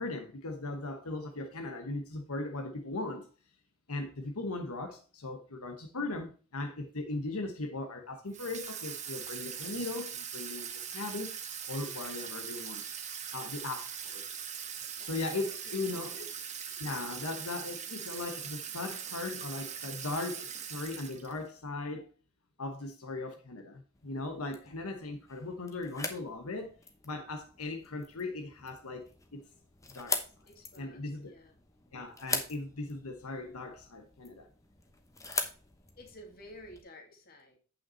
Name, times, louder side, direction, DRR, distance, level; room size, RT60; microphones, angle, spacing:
voice 1, 0.0-3.3 3.9-11.3 11.7-12.8 13.3-14.2 15.0-16.2 16.8-22.1 22.6-26.8 27.0-29.4 29.9-30.2 30.8-31.3 31.9-34.5, left 2 dB, 80° left, 1.1 m, -38 dB
Water tap faucet / Sink (filling or washing), 8.3-21.5, right 8 dB, 30° right, 1.0 m, -41 dB
voice 2, 15.6-16.5 30.4-31.5 36.0-37.6, equal, 40° left, 2.2 m, -52 dB
sound 1, 23.9-36.8, left 4 dB, 15° left, 0.9 m, -42 dB
8.9 x 5.7 x 4.2 m
head